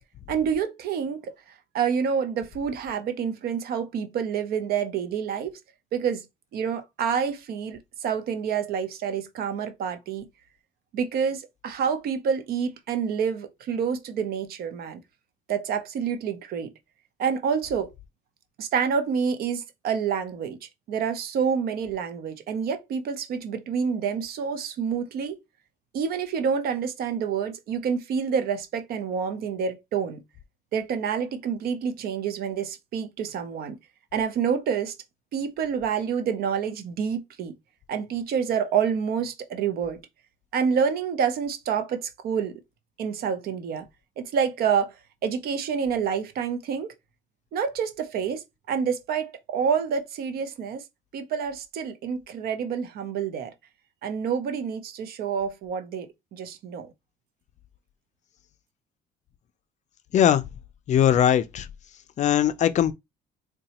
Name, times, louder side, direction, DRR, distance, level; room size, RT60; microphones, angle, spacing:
voice 1, 0.3-1.3 1.7-5.5 5.9-6.2 6.5-10.3 10.9-15.0 15.5-16.7 17.2-17.9 18.6-20.6 20.9-25.4 25.9-30.2 30.7-33.8 34.1-34.9 35.3-37.5 37.9-40.0 40.5-42.6 43.0-43.9 44.2-44.9 45.2-46.9 47.5-50.8 51.1-53.5 54.0-56.9, right 7 dB, 65° right, 0.7 m, -28 dB
voice 2, 60.1-60.4 60.9-61.7 62.2-62.9, left 10 dB, 45° left, 0.4 m, -20 dB
3.9 x 2.2 x 2.9 m
cardioid pair, 110°, 17 cm